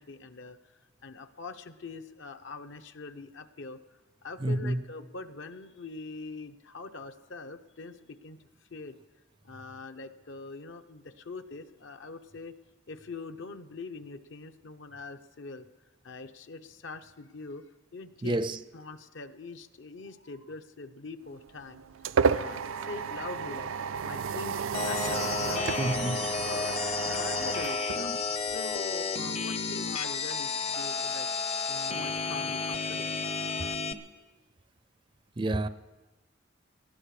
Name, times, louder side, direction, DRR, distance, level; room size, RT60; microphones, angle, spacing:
voice 1, 0.0-3.8 4.2-8.4 8.7-9.0 9.4-12.5 12.9-15.7 16.0-18.4 18.7-21.8 22.1-23.7 24.0-25.8 26.4-28.2 28.5-31.3 31.7-33.1 35.5-35.6, left 3 dB, 70° left, 0.8 m, -43 dB
voice 2, 4.4-4.8 18.2-18.6 25.8-26.2 35.4-35.7, right 1 dB, 25° right, 0.4 m, -29 dB
sound 1, 21.3-28.7, right 6 dB, 85° right, 0.4 m, -32 dB
sound 2, 24.7-33.9, left 4 dB, 30° left, 0.6 m, -32 dB
19.5 x 13.0 x 4.9 m
head